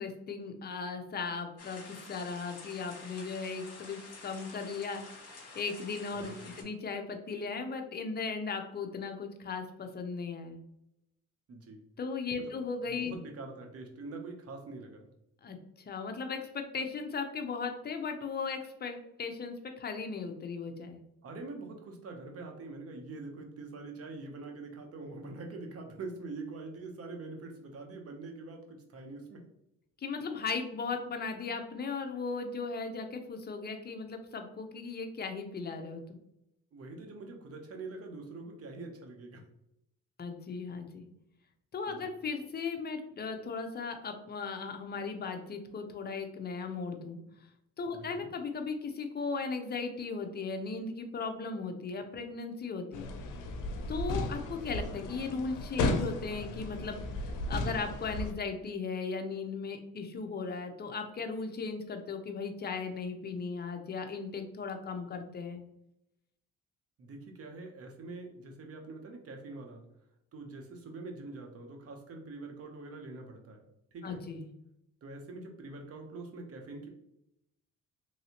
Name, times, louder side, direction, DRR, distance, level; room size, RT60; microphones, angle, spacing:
voice 1, 0.0-5.0 5.5-10.6 12.0-13.1 15.4-21.0 30.0-36.2 40.2-41.0 41.7-47.2 47.8-53.1 53.9-65.6 74.0-74.4, left 4 dB, 35° left, 5 dB, 0.6 m, -37 dB
sound 1, 1.6-6.6, left 3 dB, 55° left, 1.1 m, -49 dB
voice 2, 6.2-6.6 11.5-11.8 12.4-12.6 12.9-15.1 21.2-29.4 36.7-39.4 41.9-42.1 47.9-48.3 67.0-69.8 70.3-73.6 73.9-74.2 75.0-76.9, right 3 dB, 50° right, 3 dB, 0.8 m, -44 dB
sound 2, 52.9-58.3, left 2 dB, 85° left, 0.5 m, -34 dB
3.1 x 2.7 x 2.8 m, 0.81 s
cardioid pair, 90°, 30 cm